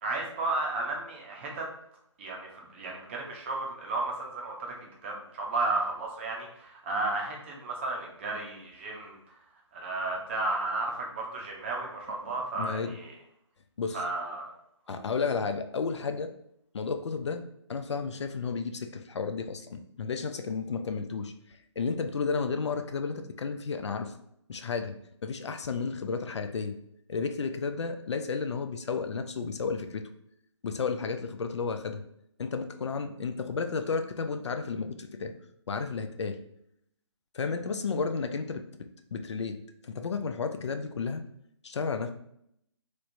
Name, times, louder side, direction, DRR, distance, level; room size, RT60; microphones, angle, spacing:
voice 1, 0.0-1.7 2.2-4.7 5.0-9.2 9.8-13.1 13.9-14.5 14.9-15.1, right 2 dB, 25° right, -1 dB, 0.6 m, -33 dB
voice 2, 12.5-13.0 13.8-14.0 14.9-16.3 16.7-24.2 24.5-24.9 25.2-26.7 27.1-30.1 30.6-32.0 32.4-35.3 35.7-36.4 37.3-38.6 39.1-39.6 39.8-41.2 41.6-42.1, left 5 dB, 65° left, 7 dB, 0.4 m, -32 dB
3.1 x 3.1 x 2.5 m, 0.73 s
figure-of-eight pair, 155°, 16 cm